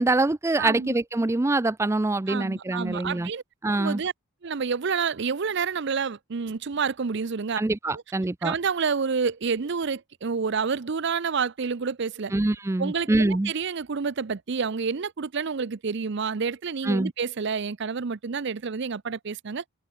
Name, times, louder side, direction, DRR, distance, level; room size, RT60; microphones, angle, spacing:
voice 1, 0.0-3.3 3.6-4.0 7.6-8.5 12.3-13.5 16.8-17.1, right 2 dB, 15° right, 0.4 m, -24 dB
voice 2, 0.6-1.0 2.3-3.4 3.8-4.1 4.4-7.6 7.9-8.0 8.4-12.3 12.8-19.6, right 5 dB, 55° right, 0.6 m, -29 dB
head